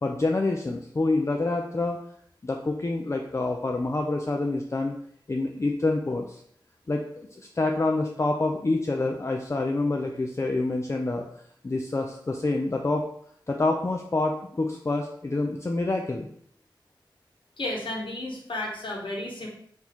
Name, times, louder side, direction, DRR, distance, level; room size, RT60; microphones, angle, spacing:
voice 1, 0.0-2.0 2.4-5.0 5.3-6.4 6.9-11.3 11.6-13.1 13.5-16.3, left 2 dB, 35° left, 2 dB, 0.4 m, -27 dB
voice 2, 17.6-19.5, left 1 dB, 85° left, -1 dB, 1.1 m, -32 dB
3.9 x 2.7 x 4.5 m, 0.67 s
wide cardioid pair, 55°, 8 cm